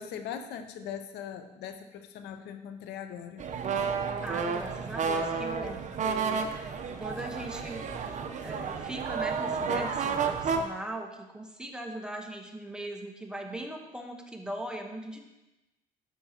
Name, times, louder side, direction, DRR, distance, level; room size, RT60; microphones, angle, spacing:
voice 1, 0.0-3.5, left 8 dB, 80° left, 7 dB, 0.8 m, -40 dB
sound 1, 3.4-10.6, right 5 dB, 45° right, 0.8 m, -31 dB
voice 2, 4.2-6.7 7.0-7.8 8.4-15.2, right 1 dB, 5° right, 2 dB, 1.1 m, -39 dB
11.0 x 7.2 x 2.9 m, 1.0 s
cardioid pair, 110°, 17 cm